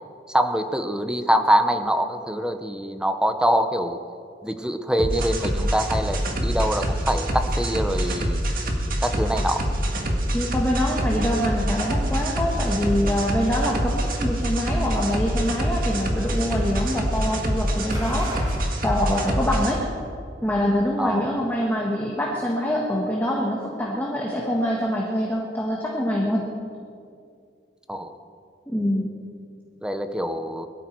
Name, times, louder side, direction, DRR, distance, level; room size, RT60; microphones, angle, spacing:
voice 1, 0.3-4.0 4.4-8.4 9.0-9.6 21.0-21.3 27.9-28.1 29.8-30.7, equal, 5° right, 7 dB, 0.8 m, -24 dB
sound 1, 5.0-19.7, equal, 50° right, 2.0 m, -25 dB
sound 2, 7.2-18.6, equal, 20° right, 3.2 m, -44 dB
voice 2, 10.3-18.4 18.8-19.8 20.4-26.5 28.7-29.0, equal, 10° left, -3 dB, 1.6 m, -25 dB
22.0 x 13.5 x 4.6 m, 2.4 s
head